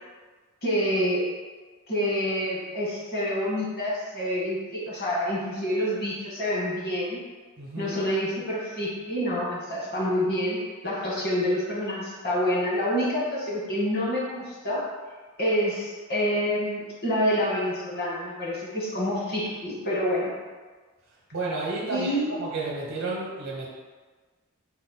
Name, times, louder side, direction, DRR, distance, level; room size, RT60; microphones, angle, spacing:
voice 1, 0.6-1.4 1.9-7.2 7.8-14.8 15.4-20.3 21.9-22.3, equal, 50° left, -6 dB, 1.2 m, -27 dB
voice 2, 7.6-8.0 21.3-23.7, right 2 dB, 80° right, -4 dB, 0.7 m, -31 dB
4.1 x 2.2 x 4.1 m, 1.4 s
head